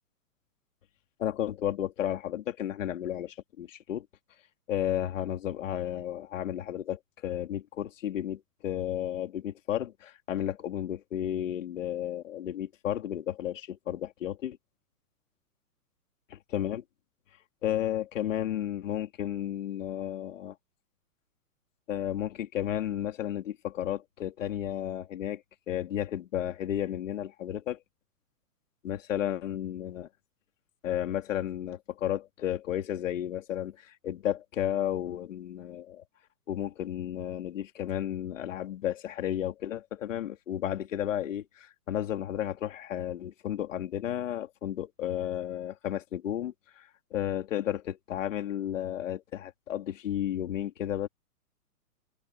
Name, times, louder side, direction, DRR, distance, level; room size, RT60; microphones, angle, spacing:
voice 1, 1.2-4.1 4.7-14.6 16.5-16.8 17.6-20.6 21.9-27.8 28.8-30.1 30.8-36.0 36.5-46.8 47.1-51.1, left 11 dB, 50° left, 3.6 m, -33 dB
hypercardioid pair, 165°, 47 cm